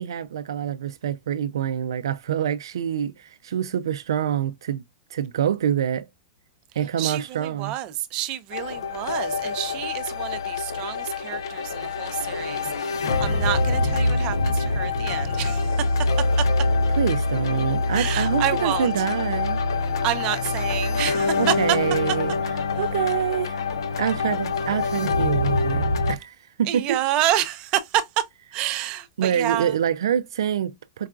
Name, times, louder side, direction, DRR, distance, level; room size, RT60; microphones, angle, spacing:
voice 1, 0.0-4.8 5.1-6.1 6.8-7.7 17.0-19.6 21.4-22.4 22.8-23.6 24.0-27.0 29.2-31.1, right 9 dB, 90° right, 0.3 m, -26 dB
voice 2, 7.0-15.8 17.9-18.9 20.0-21.5 26.7-28.0 28.5-29.7, right 13 dB, 40° right, 0.6 m, -28 dB
sound 1, 8.5-26.2, left 3 dB, 85° left, 0.7 m, -25 dB
4.6 x 2.3 x 2.3 m
hypercardioid pair, 135°, 2 cm